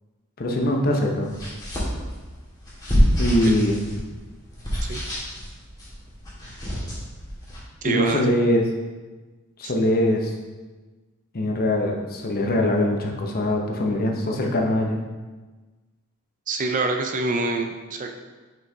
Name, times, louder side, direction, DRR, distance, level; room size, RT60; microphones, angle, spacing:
voice 1, 0.4-1.3 3.2-3.8 7.8-8.6 9.6-10.3 11.3-15.0, left 1 dB, 45° left, 1 dB, 0.8 m, -22 dB
sound 1, 1.2-7.6, equal, 20° left, 1.9 m, -27 dB
voice 2, 7.8-8.3 9.6-9.7 16.5-18.1, right 3 dB, 40° right, 5 dB, 0.5 m, -26 dB
6.1 x 5.6 x 2.8 m, 1.3 s
head